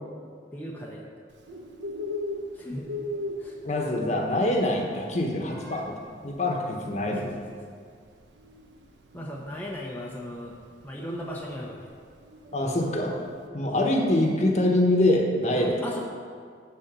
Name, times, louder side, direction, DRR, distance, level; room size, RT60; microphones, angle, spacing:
voice 1, 0.5-1.2 2.5-2.9 3.4-3.6 7.0-7.8 9.1-10.6 10.8-11.9 13.7-13.8 15.5-16.0, equal, 10° left, -3 dB, 0.8 m, -37 dB
Bird, 1.3-13.4, left 1 dB, 80° right, 1.1 m, -40 dB
voice 2, 3.6-5.9 6.2-7.2 12.5-13.1 13.5-15.8, left 1 dB, 40° left, 1 dB, 1.2 m, -24 dB
12.0 x 4.1 x 7.4 m, 2.1 s
head